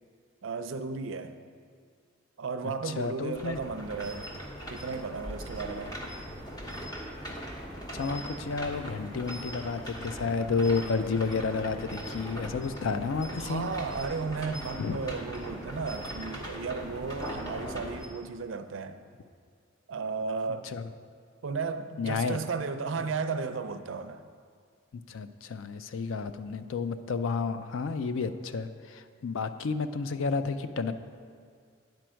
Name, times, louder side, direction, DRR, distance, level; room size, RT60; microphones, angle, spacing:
voice 1, 0.4-1.4 2.4-4.3 4.7-6.0 13.3-19.0 19.9-20.7 21.4-24.2, right 4 dB, 75° right, 9 dB, 0.5 m, -34 dB
voice 2, 3.0-3.6 7.9-13.7 14.8-15.0 20.7-20.8 22.0-22.4 25.1-30.9, left 4 dB, 85° left, 11 dB, 0.4 m, -31 dB
sound 1, 3.3-18.1, equal, 20° left, 0.9 m, -40 dB
9.3 x 4.5 x 6.2 m, 2.2 s
head